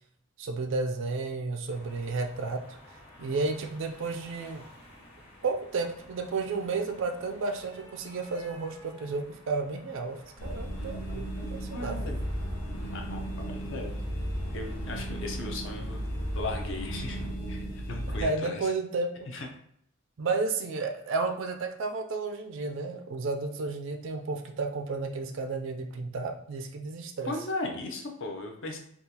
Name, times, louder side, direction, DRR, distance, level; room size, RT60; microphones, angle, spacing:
voice 1, 0.4-2.8 3.2-4.6 5.4-11.3 11.5-12.0 18.1-19.3 20.2-27.3, right 3 dB, 55° right, 5 dB, 0.3 m, -32 dB
sound 1, 1.7-17.3, equal, 30° left, 0.9 m, -52 dB
sound 2, 10.4-18.2, equal, 85° left, 0.8 m, -35 dB
voice 2, 11.3-12.2 12.9-14.0 14.5-16.0 16.3-18.7 19.3-19.5 27.2-28.8, left 2 dB, 55° left, 2 dB, 0.6 m, -37 dB
3.6 x 2.3 x 2.8 m, 0.69 s
head